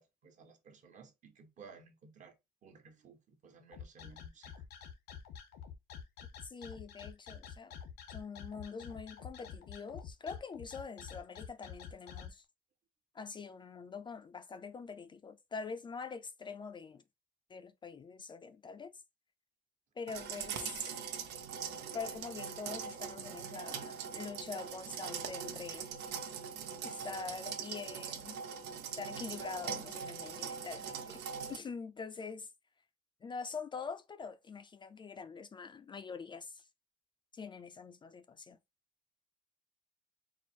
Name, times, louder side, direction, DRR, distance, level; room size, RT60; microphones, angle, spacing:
voice 1, 0.0-2.4 2.6-4.6, right 5 dB, 45° right, 1.2 m, -57 dB
sound 1, 3.7-12.3, left 8 dB, 75° left, 0.9 m, -48 dB
voice 2, 6.4-7.7 8.1-12.4 13.1-17.0 17.5-18.9 20.0-20.9 21.9-25.9 26.8-28.4 29.0-31.2 31.5-32.5 33.2-36.7 37.3-38.6, left 5 dB, 30° left, 0.4 m, -44 dB
sound 2, 20.1-31.6, right 7 dB, 90° right, 0.8 m, -42 dB
4.4 x 2.0 x 4.4 m
cardioid pair, 110°, 17 cm